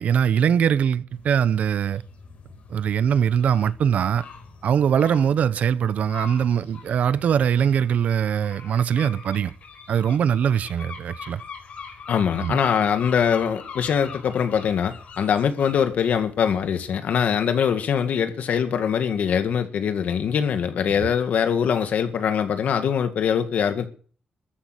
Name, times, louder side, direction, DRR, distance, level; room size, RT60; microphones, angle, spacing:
voice 1, 0.0-2.0 2.7-4.3 4.6-9.5 9.9-11.4 12.4-12.6, right 8 dB, 75° right, 0.7 m, -22 dB
sound 1, 1.1-16.9, left 6 dB, 65° left, 4.9 m, -43 dB
voice 2, 12.1-23.9, left 7 dB, 80° left, 1.9 m, -23 dB
14.0 x 10.5 x 6.7 m
wide cardioid pair, 160°, 3 cm